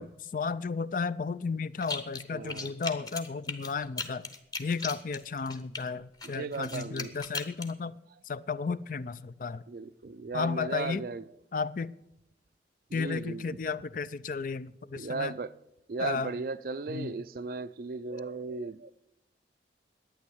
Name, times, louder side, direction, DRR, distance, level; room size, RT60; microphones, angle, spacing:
voice 1, 0.0-4.3 4.6-8.0 8.2-9.6 10.3-11.0 11.5-11.9 12.9-15.3 16.0-16.3 16.9-17.1, left 5 dB, 45° left, 0.4 m, -33 dB
sound 1, 1.8-2.2 2.5-5.8 6.2-7.7, left 4 dB, 20° left, 1.0 m, -37 dB
voice 2, 2.3-2.7 6.3-7.2 9.7-11.2 12.9-13.5 14.9-15.5 15.9-18.9, right 3 dB, 50° right, 0.4 m, -36 dB
11.5 x 9.3 x 8.5 m
head